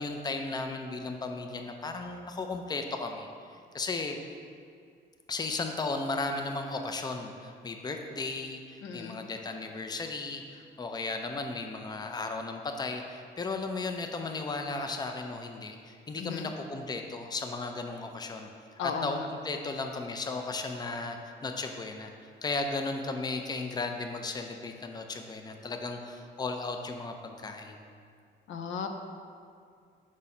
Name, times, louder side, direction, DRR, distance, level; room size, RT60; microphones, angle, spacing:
voice 1, 0.0-4.2 5.3-18.5 19.0-27.8, left 3 dB, 20° left, 4 dB, 0.5 m, -35 dB
voice 2, 8.8-9.2 16.2-16.5 18.8-19.3 28.5-28.9, left 6 dB, 80° left, 5 dB, 0.6 m, -35 dB
5.4 x 4.8 x 4.2 m, 2.2 s
cardioid pair, 90°, 20 cm